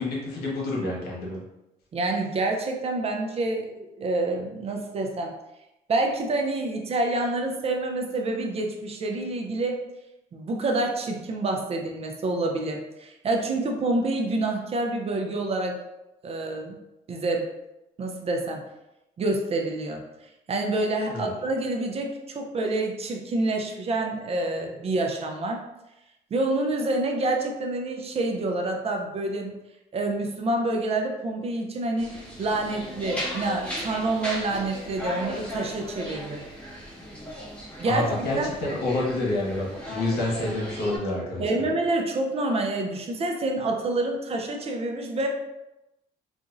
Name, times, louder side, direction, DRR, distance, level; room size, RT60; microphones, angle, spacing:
voice 1, 0.0-1.4 21.1-21.3 37.8-41.7, left 2 dB, 70° left, -3 dB, 1.2 m, -28 dB
voice 2, 1.9-5.3 5.9-9.8 10.3-15.8 16.2-16.8 17.1-17.5 18.0-18.6 19.2-20.0 20.5-25.6 26.3-29.5 29.9-36.4 37.8-38.5 41.4-45.3, right 2 dB, 35° right, 2 dB, 0.5 m, -27 dB
sound 1, 32.0-41.0, equal, 10° left, 1.1 m, -37 dB
4.0 x 2.5 x 2.5 m, 0.93 s
cardioid pair, 110°, 17 cm